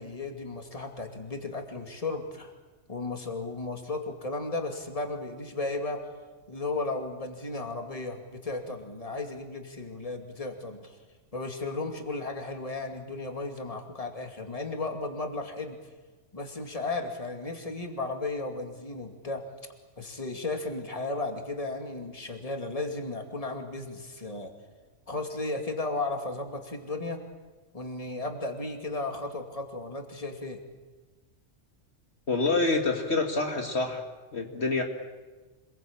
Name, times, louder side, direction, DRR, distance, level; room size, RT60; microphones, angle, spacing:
voice 1, 0.0-2.5 2.9-6.0 6.5-11.0 11.3-15.8 16.3-19.5 20.0-24.5 25.1-27.2 27.7-30.6, left 3 dB, 30° left, 4 dB, 2.6 m, -34 dB
voice 2, 32.3-34.0 34.3-34.8, left 3 dB, 55° left, 3 dB, 2.4 m, -26 dB
27.0 x 21.5 x 8.8 m, 1.3 s
omnidirectional pair, 1.3 m